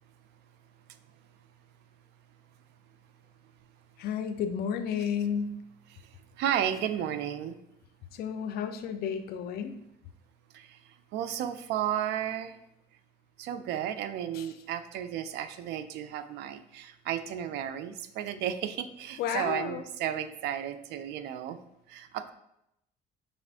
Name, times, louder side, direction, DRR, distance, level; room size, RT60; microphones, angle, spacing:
voice 1, 4.0-5.6 8.2-9.8 14.3-14.4 19.2-19.8, left 7 dB, 70° left, 9 dB, 0.4 m, -32 dB
voice 2, 5.9-7.6 10.5-12.6 13.4-21.6 21.9-22.3, right 10 dB, 80° right, 11 dB, 0.4 m, -33 dB
5.3 x 2.4 x 3.4 m, 0.80 s
cardioid pair, 110°, 17 cm